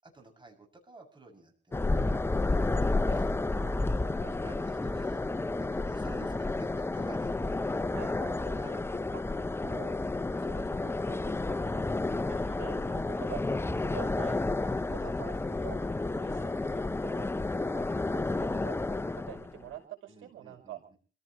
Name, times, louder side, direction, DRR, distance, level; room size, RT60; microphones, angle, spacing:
voice 1, 0.0-2.8 3.1-3.3 3.8-7.7 8.6-8.9 14.5-15.0 17.5-17.7 20.1-21.0, right 3 dB, 25° right, 3 dB, 7.0 m, -52 dB
sound 1, 1.7-19.6, left 2 dB, 10° left, 0.7 m, -31 dB
voice 2, 3.6-4.4 7.9-8.6 9.1-9.2 9.6-10.0 10.4-11.9 12.3-14.4 15.0-15.8 16.1-17.3 17.7-17.8 18.1-20.8, right 11 dB, 85° right, 6 dB, 5.4 m, -47 dB
28.5 x 15.5 x 3.1 m, 0.40 s
cardioid pair, 90°, 20 cm